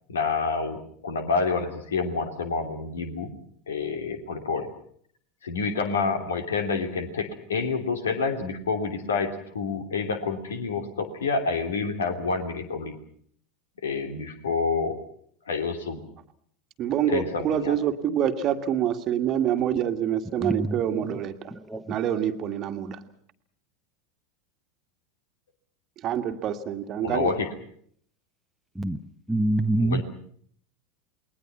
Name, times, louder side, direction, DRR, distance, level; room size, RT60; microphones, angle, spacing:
voice 1, 0.1-3.3 3.7-4.7 5.4-12.9 13.8-15.0 15.5-16.0 17.1-17.8 27.0-27.5 29.8-30.0, left 4 dB, 70° left, 2.9 m, -28 dB
voice 2, 16.8-21.5 21.9-23.1 26.0-27.3, right 10 dB, 35° right, 1.8 m, -26 dB
voice 3, 20.4-20.7 21.5-21.9 28.8-29.0 29.3-30.0, right 2 dB, 5° right, 1.1 m, -25 dB
28.5 x 21.0 x 5.9 m
figure-of-eight pair, 80°, 0 cm